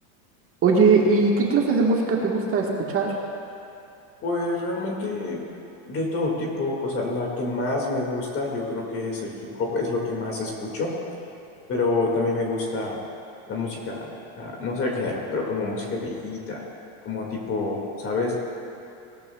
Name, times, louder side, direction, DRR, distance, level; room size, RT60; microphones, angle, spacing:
voice 1, 0.6-3.1, right 4 dB, 30° right, -1 dB, 1.5 m, -20 dB
voice 2, 4.2-5.4 5.9-10.9 11.7-13.0 13.5-16.6 17.0-18.4, left 3 dB, 30° left, -1 dB, 2.1 m, -27 dB
18.5 x 13.5 x 2.3 m, 2.8 s
supercardioid pair, 150°, 43 cm